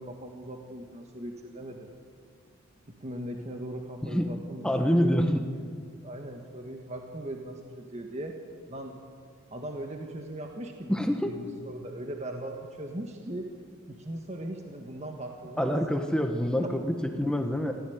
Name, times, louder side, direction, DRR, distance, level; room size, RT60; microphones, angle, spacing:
voice 1, 0.0-1.9 2.9-5.2 6.0-8.4 8.7-9.0 9.5-13.5 13.9-15.7 16.6-16.7, right 1 dB, 30° right, 2 dB, 1.6 m, -39 dB
voice 2, 4.0-4.3 4.6-5.4 10.9-11.3 15.6-17.7, equal, 5° left, 5 dB, 1.3 m, -26 dB
27.0 x 14.5 x 9.5 m, 2.1 s
head